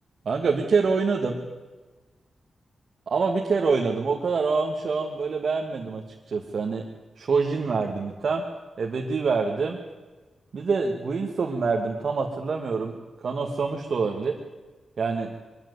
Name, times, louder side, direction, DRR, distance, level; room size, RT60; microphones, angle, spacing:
voice 1, 0.2-1.4 3.1-6.0 6.3-6.8 7.2-8.4 8.8-9.8 10.5-13.0 13.2-14.3 15.0-15.3, right 4 dB, 50° right, 1 dB, 1.6 m, -25 dB
23.0 x 13.5 x 9.5 m, 1.2 s
wide cardioid pair, 175°, 0 cm